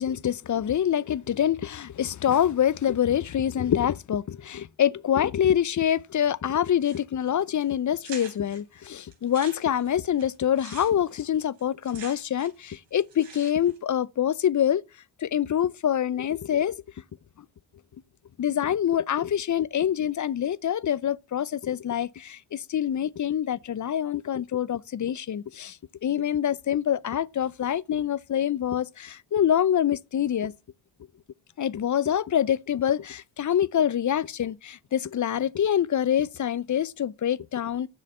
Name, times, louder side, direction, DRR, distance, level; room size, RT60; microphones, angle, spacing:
voice 1, 0.0-14.8 15.2-16.8 18.4-25.8 26.0-30.5 31.6-37.9, left 9 dB, 40° left, 0.6 m, -25 dB
sound 1, 6.8-7.3 7.6-7.7 8.0-8.6 9.1-12.7 12.9-13.8, right 6 dB, 85° right, 3.3 m, -45 dB
7.5 x 6.3 x 7.9 m
supercardioid pair, 50°, 45 cm